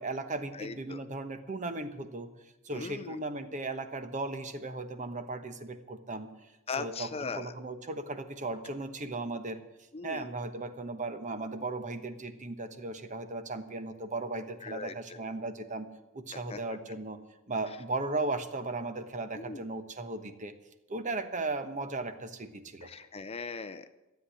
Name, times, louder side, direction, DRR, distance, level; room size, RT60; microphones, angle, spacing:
voice 1, 0.0-2.3 2.6-6.3 6.8-9.6 10.0-15.9 16.1-17.2 17.5-20.5 20.9-22.9, right 2 dB, 35° right, 9 dB, 1.1 m, -36 dB
voice 2, 0.5-1.0 2.7-3.2 6.7-7.5 9.9-10.3 14.6-15.2 16.3-16.6 19.4-19.6 22.8-23.9, left 4 dB, 25° left, 11 dB, 0.5 m, -39 dB
13.5 x 8.0 x 10.0 m, 1.0 s
head